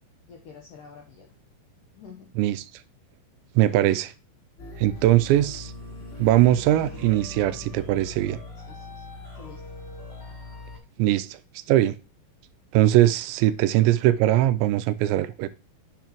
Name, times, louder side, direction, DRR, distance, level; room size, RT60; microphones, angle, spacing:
voice 1, 0.3-1.4 1.9-2.3 8.7-9.1 9.3-9.6, left 6 dB, 75° left, 1.9 m, -47 dB
voice 2, 3.6-4.1 4.8-5.7 6.2-8.4 11.0-11.4 11.7-12.0 12.7-15.5, right 14 dB, 85° right, 2.7 m, -21 dB
sound 1, 4.6-10.8, left 2 dB, 30° left, 4.3 m, -41 dB
sound 2, 5.4-9.0, equal, 10° left, 2.5 m, -50 dB
9.0 x 7.9 x 3.0 m
omnidirectional pair, 5.3 m